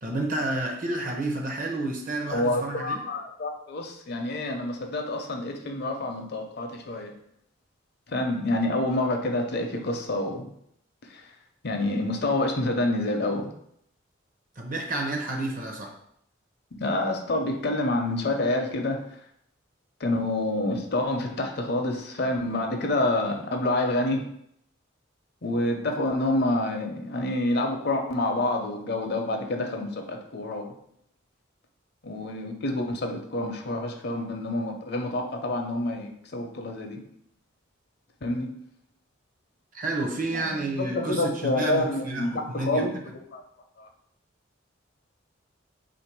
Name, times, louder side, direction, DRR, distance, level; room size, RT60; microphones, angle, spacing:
voice 1, 0.0-3.0 14.6-16.0 39.7-43.0, right 2 dB, 45° right, 2 dB, 0.7 m, -30 dB
voice 2, 2.3-7.1 8.1-10.5 11.0-11.3 11.6-13.5 16.8-19.2 20.0-24.3 25.4-30.7 32.0-37.0 38.2-38.5 40.3-42.9 43.3-43.4 43.8-43.9, left 2 dB, 55° left, 3 dB, 0.6 m, -28 dB
3.5 x 2.6 x 4.5 m, 0.72 s
head